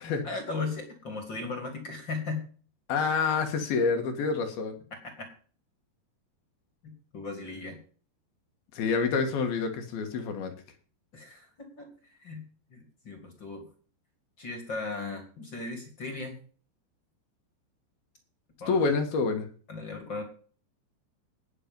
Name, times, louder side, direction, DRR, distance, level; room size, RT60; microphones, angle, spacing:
voice 1, 0.0-2.4 4.9-5.3 6.8-7.8 11.1-13.6 14.4-16.4 18.6-18.8 19.7-20.2, left 3 dB, 30° left, 5 dB, 2.6 m, -37 dB
voice 2, 2.9-4.7 8.7-10.5 18.7-19.5, left 4 dB, 65° left, 5 dB, 3.2 m, -27 dB
19.5 x 6.9 x 5.3 m, 0.42 s
omnidirectional pair, 5.0 m